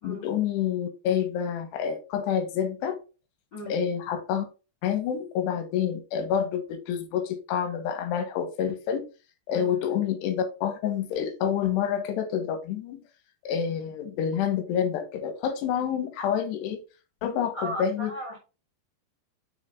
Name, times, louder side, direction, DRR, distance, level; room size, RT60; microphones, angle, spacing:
voice 1, 0.0-3.0 3.7-4.5 4.8-9.1 9.5-13.0 13.4-16.8 17.2-18.1, left 8 dB, 80° left, 3.1 m, -28 dB
voice 2, 17.5-18.4, equal, 35° left, 1.9 m, -36 dB
8.3 x 6.2 x 2.4 m
omnidirectional pair, 4.9 m